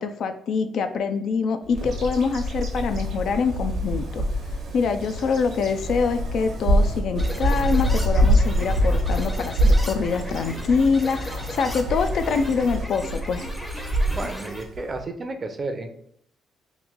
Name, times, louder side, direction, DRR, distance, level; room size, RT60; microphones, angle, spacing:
voice 1, 0.0-4.2 4.7-13.5, left 5 dB, 70° left, 8 dB, 0.3 m, -25 dB
Bird vocalization bird call bird song, 1.7-15.0, equal, 70° right, 0.8 m, -25 dB
sound 1, 7.2-14.6, left 1 dB, 10° left, 0.6 m, -38 dB
voice 2, 14.1-15.9, right 3 dB, 35° right, 6 dB, 0.5 m, -32 dB
3.1 x 2.5 x 3.6 m, 0.67 s
cardioid pair, 90°, 0 cm